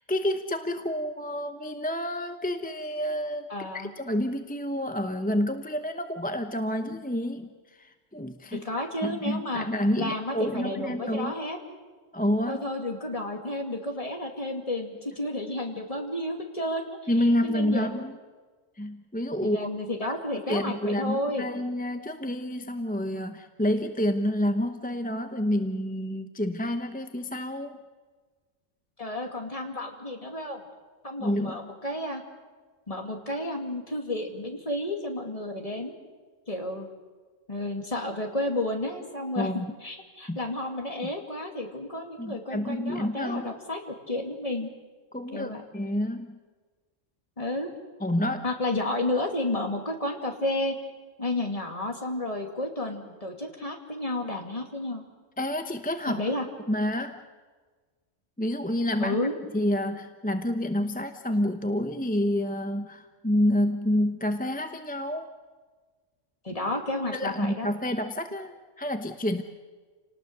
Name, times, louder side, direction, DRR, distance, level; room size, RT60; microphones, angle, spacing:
voice 1, 0.1-3.5 3.7-8.6 9.0-11.3 12.1-12.7 17.1-18.1 18.8-19.7 20.0-27.8 31.2-31.6 39.4-39.7 40.3-40.4 41.0-41.1 42.2-43.5 45.1-46.4 48.0-48.5 55.4-56.2 56.7-57.2 58.4-59.2 59.5-65.3 67.1-69.4, left 1 dB, 10° left, 6 dB, 0.7 m, -28 dB
voice 2, 3.5-3.9 8.5-9.7 10.0-11.6 12.5-17.0 17.4-18.0 19.4-21.4 29.0-30.6 31.0-32.2 32.9-36.0 36.5-36.9 37.5-44.7 45.3-45.6 47.4-47.7 48.4-50.8 51.2-55.0 56.1-56.4 59.0-59.3 66.4-67.7, left 1 dB, 30° left, 2 dB, 2.6 m, -31 dB
28.5 x 19.0 x 6.8 m, 1.4 s
omnidirectional pair, 1.3 m